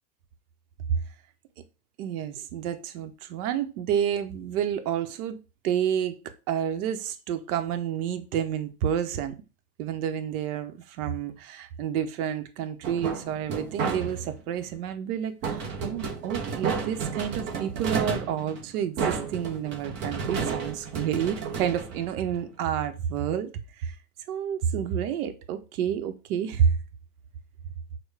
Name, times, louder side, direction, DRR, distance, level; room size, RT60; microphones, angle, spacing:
voice 1, 2.0-5.4 5.6-6.2 6.5-9.4 9.8-23.5 23.8-23.9 24.3-26.8, right 9 dB, 60° right, 0.8 m, -29 dB
sound 1, 12.8-14.4 15.4-22.6, right 5 dB, 25° right, 0.5 m, -32 dB
6.4 x 2.2 x 3.3 m
supercardioid pair, 145°, 50 cm